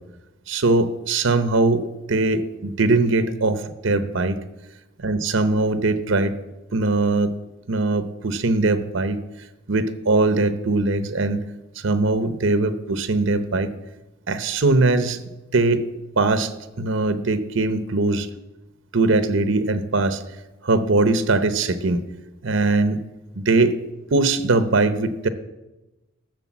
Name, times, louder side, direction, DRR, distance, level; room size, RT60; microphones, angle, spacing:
voice 1, 0.5-4.4 5.0-6.3 6.7-7.3 7.7-9.2 9.7-11.4 11.8-13.7 14.3-15.2 15.5-15.9 16.2-16.5 16.8-18.3 18.9-20.2 20.6-22.0 22.4-23.0 23.4-23.7 24.1-25.3, right 3 dB, 65° right, 11 dB, 0.8 m, -21 dB
13.5 x 6.7 x 7.2 m, 1.0 s
head